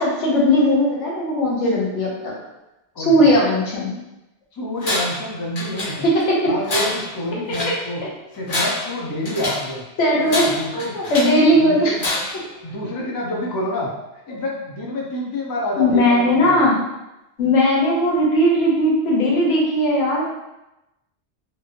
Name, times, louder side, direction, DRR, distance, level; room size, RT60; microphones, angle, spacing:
voice 1, 0.0-2.3 3.0-3.9 6.0-6.5 10.0-10.4 10.7-12.0 12.3-12.4 14.3-14.4 15.8-16.8 17.4-20.2, equal, 85° left, -3 dB, 1.1 m, -18 dB
voice 2, 2.9-3.3 4.5-6.0 6.5-8.0 8.3-9.8 10.2-11.0 11.6-12.0 12.6-13.9 14.3-16.6, left 1 dB, 35° left, -3 dB, 0.4 m, -28 dB
Tools, 4.8-5.3 5.6-6.3 6.6-7.8 8.3-9.7 10.3-11.4 12.0-12.5, left 2 dB, 50° left, 0.9 m, -26 dB
2.9 x 2.5 x 2.8 m, 0.94 s
omnidirectional pair, 1.2 m